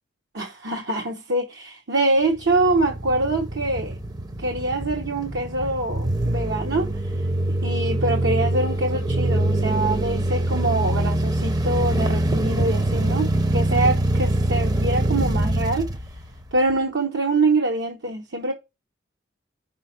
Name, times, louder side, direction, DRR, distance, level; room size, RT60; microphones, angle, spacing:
voice 1, 0.3-4.0 4.4-7.1 7.5-15.9 16.5-18.5, right 2 dB, 65° right, 0.9 m, -24 dB
sound 1, 2.4-16.7, right 1 dB, 20° right, 0.7 m, -24 dB
5.5 x 4.2 x 5.7 m
head